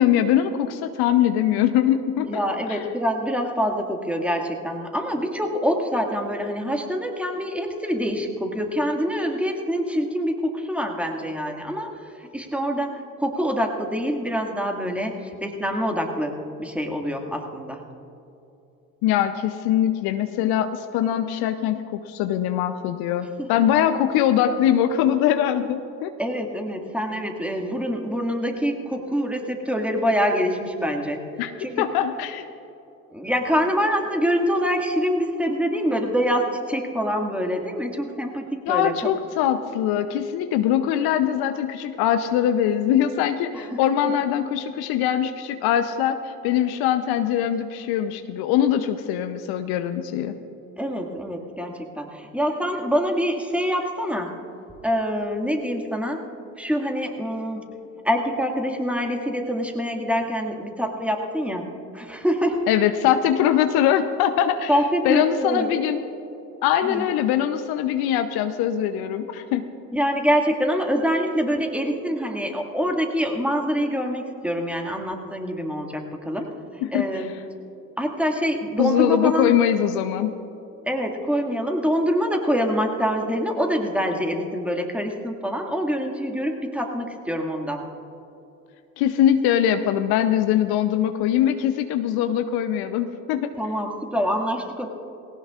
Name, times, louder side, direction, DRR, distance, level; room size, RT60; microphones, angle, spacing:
voice 1, 0.0-2.4 2.7-2.8 19.0-26.1 31.4-31.5 31.8-32.4 38.7-50.4 62.7-64.7 65.0-66.0 66.6-69.6 76.8-77.3 78.8-80.3 89.0-93.5, left 10 dB, 60° left, 9 dB, 0.8 m, -22 dB
voice 2, 2.2-11.9 12.2-16.3 16.6-17.8 23.4-23.5 26.2-31.2 31.6-31.9 33.1-39.1 43.7-43.8 50.8-54.3 54.8-56.2 56.6-57.6 58.0-61.7 61.9-62.6 64.7-65.7 66.8-67.1 69.9-76.5 76.9-77.4 78.0-79.5 80.9-87.9 93.6-94.9, equal, 5° right, 2 dB, 2.0 m, -25 dB
19.5 x 18.0 x 2.5 m, 2.9 s
hypercardioid pair, 55°, 42 cm